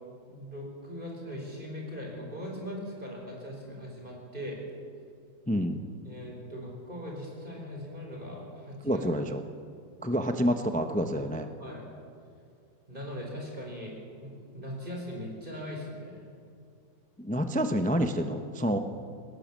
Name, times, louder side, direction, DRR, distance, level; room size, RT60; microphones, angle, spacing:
voice 1, 0.3-4.6 6.0-9.0 11.6-11.9 12.9-16.3 18.7-18.8, equal, 25° right, -1 dB, 5.0 m, -40 dB
voice 2, 5.5-5.8 8.8-9.4 10.0-11.5 17.2-18.8, equal, 15° left, 7 dB, 0.3 m, -28 dB
18.5 x 18.5 x 7.6 m, 2.3 s
omnidirectional pair, 2.1 m